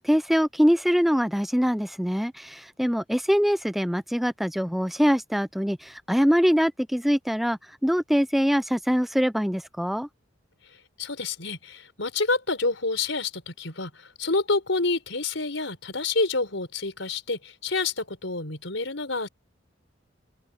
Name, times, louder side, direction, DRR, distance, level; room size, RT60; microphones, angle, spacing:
voice 1, 0.0-10.1, equal, ahead, 0.5 m, -23 dB
voice 2, 11.0-19.3, left 3 dB, 85° left, 4.5 m, -28 dB
open air
head